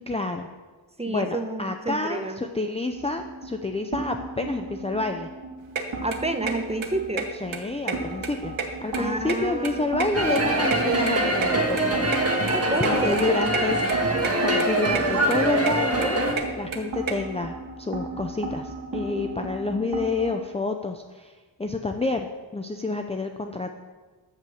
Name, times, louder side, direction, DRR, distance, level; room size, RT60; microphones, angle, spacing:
voice 1, 0.1-0.5 1.1-5.3 7.4-8.6 8.8-12.0 12.8-13.8 14.4-16.2 16.6-21.3 21.6-22.3 22.5-23.7, left 3 dB, 15° left, 4 dB, 0.5 m, -28 dB
voice 2, 1.0-2.4 6.0-7.3 8.9-9.9 12.5-13.5, right 2 dB, 15° right, 7 dB, 0.9 m, -30 dB
sound 1, 3.0-20.3, right 3 dB, 60° right, 2.4 m, -36 dB
sound 2, 5.8-5.9 6.1-6.5 6.8-6.9 7.2-7.3 7.5-8.3 8.5-9.7 10.0-11.5 11.8-11.9 12.1-12.2 12.5-12.6 12.8-12.9 13.2-13.6 13.9-14.3 14.6-15.0 15.3-17.1, right 5 dB, 75° right, 1.4 m, -30 dB
sound 3, 10.1-16.3, right 1 dB, 30° right, 1.6 m, -23 dB
12.5 x 6.0 x 7.2 m, 1.3 s
wide cardioid pair, 120°, 47 cm